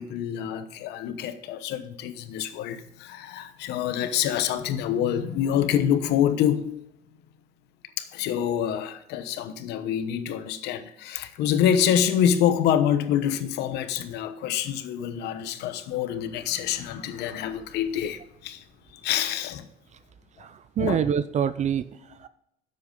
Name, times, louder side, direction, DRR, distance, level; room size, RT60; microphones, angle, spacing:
voice 1, 0.0-6.8 8.0-18.6 19.0-19.7 20.8-21.0, left 9 dB, 85° left, 1.0 m, -26 dB
voice 2, 20.4-22.3, right 8 dB, 45° right, 0.5 m, -27 dB
10.5 x 7.7 x 3.8 m
cardioid pair, 110°, 17 cm